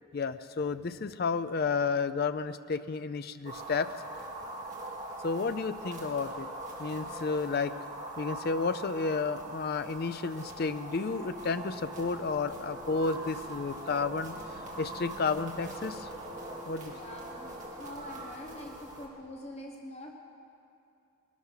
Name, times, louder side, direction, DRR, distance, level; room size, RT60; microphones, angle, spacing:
voice 1, 0.1-3.9 5.2-6.5 6.8-7.7 8.2-16.1 16.7-16.9, left 4 dB, 45° left, 11 dB, 0.4 m, -32 dB
sound 1, 3.4-19.1, right 1 dB, 35° right, 2.2 m, -42 dB
sound 2, 10.9-19.0, left 1 dB, 10° right, 3.7 m, -51 dB
voice 2, 16.9-20.1, left 1 dB, 30° left, 1 dB, 1.1 m, -45 dB
20.5 x 12.5 x 5.7 m, 2.6 s
head